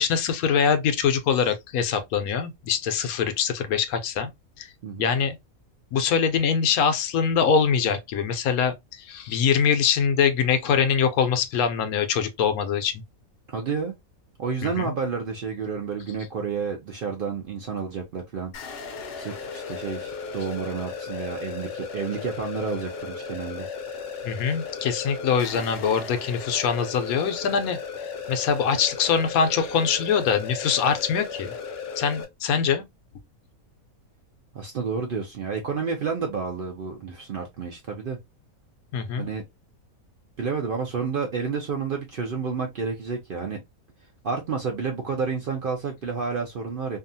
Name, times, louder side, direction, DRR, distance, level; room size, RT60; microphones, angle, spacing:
voice 1, 0.0-4.3 4.6-4.7 5.0-5.4 5.9-13.0 14.6-14.9 24.2-27.8 28.3-31.5 32.0-32.8 38.9-39.3, left 6 dB, 85° left, 1.0 m, -23 dB
voice 2, 13.5-13.9 14.4-18.5 19.2-23.7 34.5-38.2 39.2-39.4 40.4-43.6 44.2-47.0, right 5 dB, 70° right, 0.5 m, -30 dB
sound 1, 18.5-32.2, left 5 dB, 60° left, 0.7 m, -36 dB
2.7 x 2.3 x 2.6 m
omnidirectional pair, 1.5 m